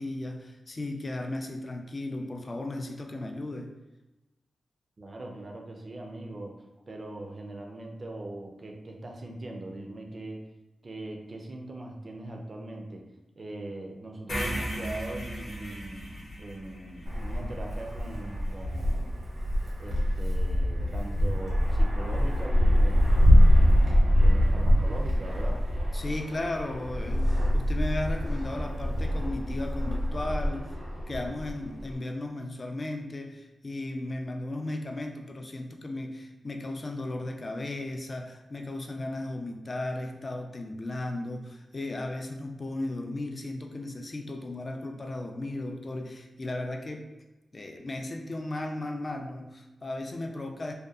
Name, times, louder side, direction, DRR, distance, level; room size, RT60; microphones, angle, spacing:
voice 1, 0.0-3.7 25.9-30.7 31.1-47.1 47.5-50.7, left 2 dB, 35° left, 3 dB, 0.3 m, -35 dB
voice 2, 5.0-10.4 10.8-13.0 13.4-19.1 19.8-23.4 24.2-25.6, right 2 dB, 40° right, 2 dB, 0.4 m, -41 dB
sound 1, 14.3-18.4, equal, 50° left, 0.8 m, -36 dB
Wind, 17.1-32.0, equal, 90° right, 0.8 m, -24 dB
2.6 x 2.2 x 2.3 m, 1.0 s
wide cardioid pair, 100°, 0 cm